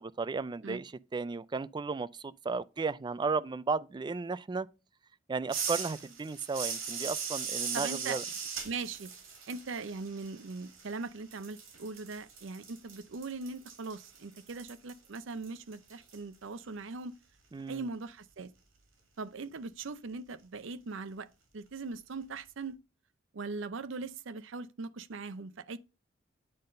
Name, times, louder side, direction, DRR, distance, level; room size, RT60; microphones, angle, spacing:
voice 1, 0.0-4.7 5.3-8.2 17.5-17.9, right 4 dB, 25° right, 0.3 m, -34 dB
sound 1, 5.5-11.0 11.3-16.2, right 6 dB, 85° right, 2.7 m, -39 dB
voice 2, 7.7-8.2 8.6-9.1 9.5-17.1 17.7-18.5 19.2-21.3 21.5-22.8 23.3-25.8, right 4 dB, 70° right, 0.6 m, -40 dB
8.7 x 3.9 x 5.3 m
head